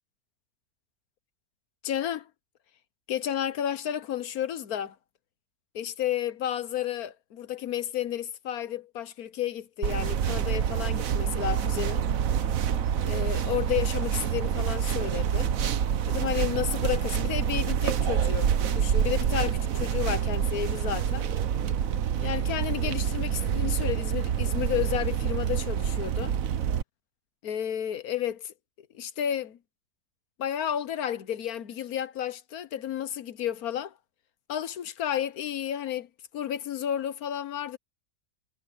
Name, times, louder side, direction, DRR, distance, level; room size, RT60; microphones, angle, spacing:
voice 1, 1.8-2.3 3.1-4.9 5.7-12.0 13.0-15.5 16.1-21.3 22.2-26.3 27.4-28.5 28.9-29.6 30.4-33.9 34.5-36.1 36.3-37.8, left 10 dB, 75° left, 1.4 m, -32 dB
sound 1, 9.8-26.8, right 8 dB, 65° right, 1.3 m, -27 dB
omnidirectional pair, 1.6 m